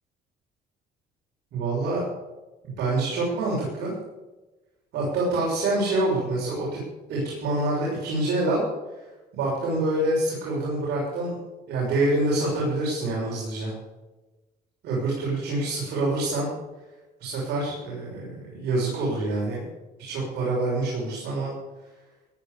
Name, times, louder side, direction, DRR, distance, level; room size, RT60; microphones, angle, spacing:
voice 1, 1.5-2.0 2.6-3.9 4.9-6.8 7.1-8.6 9.3-11.3 11.7-13.7 14.8-16.5 17.2-19.7 20.0-21.5, right 2 dB, 75° right, -4 dB, 6.8 m, -26 dB
17.5 x 10.5 x 6.9 m, 1.1 s
cardioid pair, 110°, 17 cm